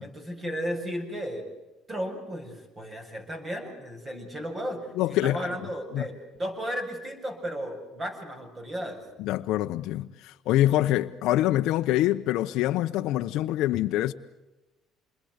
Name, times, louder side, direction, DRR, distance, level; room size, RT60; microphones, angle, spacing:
voice 1, 0.0-1.4 1.9-9.0, equal, 25° right, 7.6 m, -34 dB
voice 2, 5.0-5.5 5.9-6.1 9.2-14.1, left 14 dB, 75° left, 0.9 m, -25 dB
28.0 x 22.0 x 8.2 m
cardioid pair, 105°, 0 cm